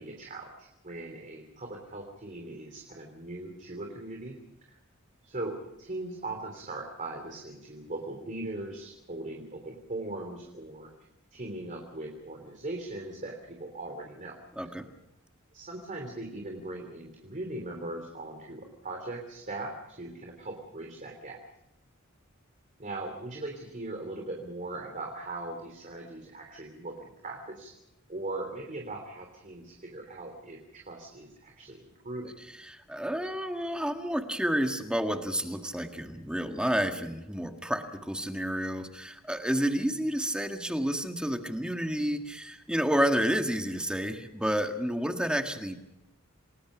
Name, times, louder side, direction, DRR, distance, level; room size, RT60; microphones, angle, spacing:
voice 1, 0.0-4.4 4.7-4.8 5.2-10.9 11.3-14.4 15.5-21.4 22.8-27.7 28.1-32.3, right 2 dB, 40° right, 1 dB, 3.3 m, -39 dB
voice 2, 14.5-14.9 32.4-45.8, equal, 5° right, 5 dB, 1.7 m, -30 dB
28.5 x 20.0 x 5.1 m, 0.87 s
head